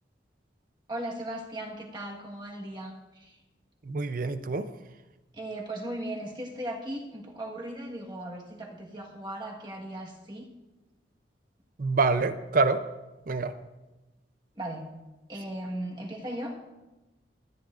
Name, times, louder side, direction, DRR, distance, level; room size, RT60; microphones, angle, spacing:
voice 1, 0.9-3.4 5.3-10.5 14.5-14.9 15.3-16.5, right 1 dB, 25° right, 0 dB, 1.4 m, -37 dB
voice 2, 3.9-4.7 11.8-12.8 13.3-13.5, right 4 dB, 50° right, 11 dB, 0.6 m, -26 dB
23.0 x 9.5 x 2.5 m, 1.1 s
head